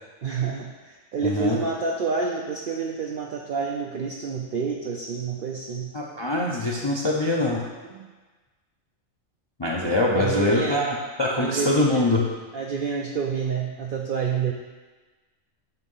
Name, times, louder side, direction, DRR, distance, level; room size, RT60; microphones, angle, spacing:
voice 1, 0.2-5.9 7.8-8.1 10.1-10.8 11.4-12.1 12.5-14.5, right 5 dB, 70° right, 0 dB, 0.5 m, -28 dB
voice 2, 1.2-1.6 5.9-7.6 9.6-12.2, left 2 dB, 40° left, -3 dB, 0.3 m, -23 dB
7.9 x 2.7 x 5.4 m, 1.3 s
omnidirectional pair, 1.4 m